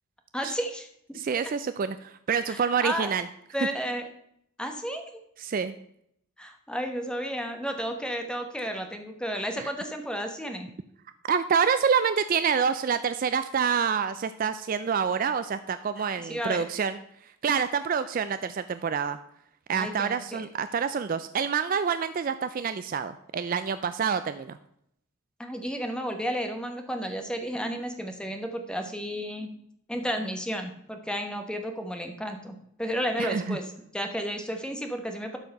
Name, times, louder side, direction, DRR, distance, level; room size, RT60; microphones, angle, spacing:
voice 1, 0.3-1.5 2.5-3.1 3.5-4.1 4.6-5.2 6.4-10.7 16.0-16.6 19.7-20.5 25.4-29.5 29.9-35.4, equal, 5° left, 5 dB, 0.9 m, -32 dB
voice 2, 1.1-3.3 5.4-5.7 9.6-9.7 11.3-17.0 17.4-19.2 19.7-24.6 33.2-33.6, right 6 dB, 40° right, 12 dB, 0.3 m, -27 dB
12.0 x 4.6 x 5.3 m, 0.73 s
head